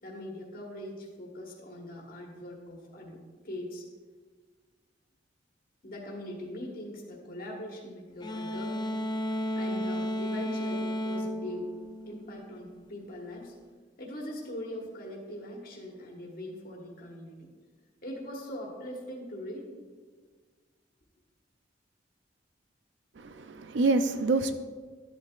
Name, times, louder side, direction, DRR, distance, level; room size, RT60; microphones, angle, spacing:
voice 1, 0.0-3.2 3.4-3.8 5.8-9.1 9.5-11.7 12.1-13.5 14.0-17.5 18.0-19.7, left 1 dB, 55° left, -2 dB, 1.4 m, -41 dB
sound 1, 8.2-12.7, equal, 25° left, 0.5 m, -33 dB
voice 2, 23.2-24.5, right 3 dB, 75° right, 9 dB, 0.5 m, -27 dB
12.0 x 8.0 x 2.4 m, 1.5 s
head